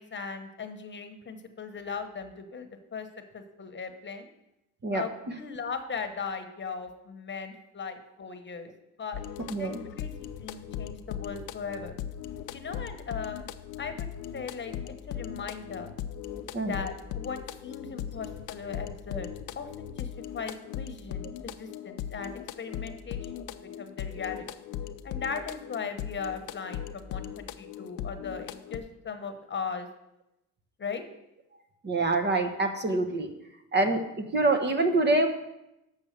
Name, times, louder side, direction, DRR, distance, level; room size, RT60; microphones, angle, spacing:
voice 1, 0.0-3.1 3.3-4.3 4.9-8.7 9.0-9.2 9.6-12.0 12.5-13.5 13.8-14.1 14.3-14.7 15.1-15.9 16.6-19.3 19.5-23.4 23.8-24.6 25.0-29.9 30.8-31.0, left 5 dB, 40° left, 7 dB, 1.1 m, -38 dB
sound 1, 9.1-28.8, left 10 dB, 85° left, 0.6 m, -39 dB
voice 2, 31.8-33.3 33.7-35.3, right 2 dB, 35° right, 6 dB, 1.1 m, -25 dB
7.2 x 6.3 x 6.7 m, 0.88 s
cardioid pair, 90°, 30 cm